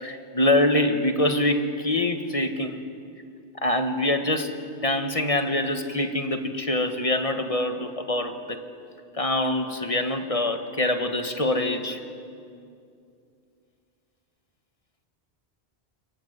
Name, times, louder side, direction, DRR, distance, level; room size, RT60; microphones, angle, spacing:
voice 1, 0.0-2.8 3.6-4.5 4.8-8.6 9.2-12.0, left 1 dB, 35° left, 7 dB, 1.6 m, -25 dB
28.0 x 22.5 x 8.0 m, 2.5 s
omnidirectional pair, 1.1 m